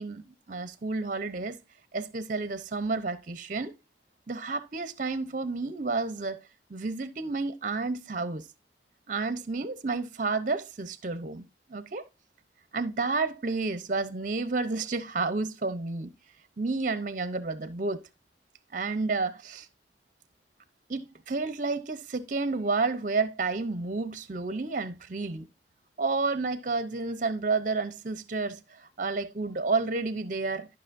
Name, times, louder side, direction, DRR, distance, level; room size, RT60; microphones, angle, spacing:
voice 1, 0.0-1.6 1.9-3.7 4.3-6.4 6.7-8.5 9.1-12.0 12.7-16.1 16.6-18.0 18.7-19.7 20.9-25.5 26.0-30.7, right 3 dB, 45° right, 0.7 m, -30 dB
12.5 x 5.9 x 2.6 m
head